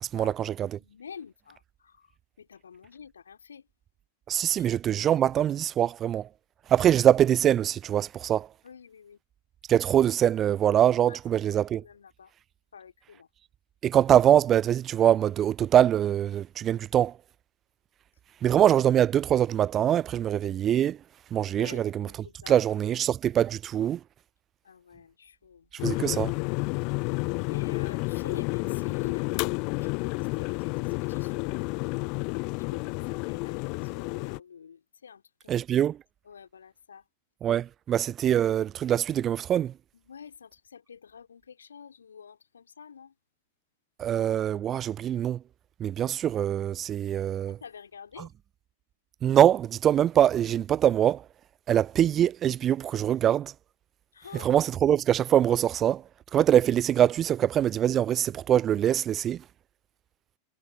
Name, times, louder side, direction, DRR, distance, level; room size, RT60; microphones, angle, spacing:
voice 1, 0.0-0.8 4.3-6.3 6.7-8.5 9.7-11.8 13.8-17.1 18.4-21.0 21.3-22.1 22.5-24.0 25.8-26.3 35.5-36.0 37.4-39.7 44.0-45.4 45.8-47.6 48.2-48.3 49.2-51.2 51.7-53.5 54.3-56.0 56.3-59.4, right 10 dB, 30° right, 0.5 m, -23 dB
voice 2, 0.8-2.1 2.4-3.7 4.5-4.7 8.6-9.2 11.1-11.2 11.8-12.3 12.7-13.3 21.6-22.9 24.6-25.7 27.5-31.8 32.7-35.6 36.2-37.0 40.1-43.1 47.5-48.3 54.1-54.5, left 7 dB, 70° left, 2.5 m, -48 dB
sound 1, 25.8-34.4, left 32 dB, 45° left, 0.3 m, -30 dB
figure-of-eight pair, 90°, 0 cm